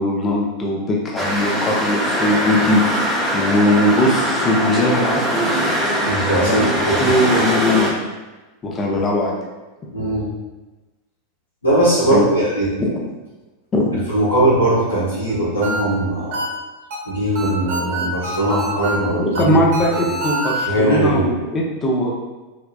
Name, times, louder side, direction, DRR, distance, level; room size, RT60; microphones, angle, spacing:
voice 1, 0.0-5.8 6.5-6.7 7.0-8.0 8.6-9.4 10.0-10.1 12.1-12.3 12.8-12.9 13.7-13.9 19.2-22.1, left 1 dB, 25° left, -2 dB, 0.7 m, -20 dB
sound 1, 1.2-7.9, equal, 10° right, 0.7 m, -21 dB
voice 2, 6.0-6.6 7.0-7.4 9.9-10.3 11.6-12.7 14.1-16.4 17.0-19.5 20.0-20.1 20.6-21.2, right 1 dB, 85° left, -9 dB, 1.3 m, -19 dB
sound 2, 15.3-20.6, right 1 dB, 50° right, 1.0 m, -27 dB
3.3 x 2.9 x 2.4 m, 1.1 s
figure-of-eight pair, 90°, 0 cm